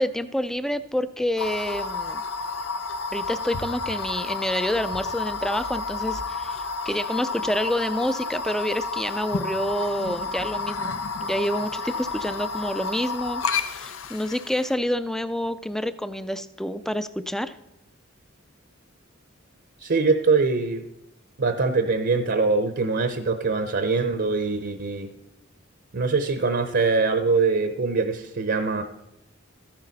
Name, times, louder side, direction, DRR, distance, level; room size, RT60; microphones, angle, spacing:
voice 1, 0.0-2.2 3.1-13.4 13.7-17.5, equal, ahead, 13 dB, 0.4 m, -28 dB
sound 1, 1.4-14.7, left 4 dB, 85° left, 0.8 m, -31 dB
voice 2, 19.8-20.9 21.4-25.1 25.9-28.8, right 4 dB, 55° right, 8 dB, 0.7 m, -23 dB
13.5 x 10.5 x 4.1 m, 0.87 s
head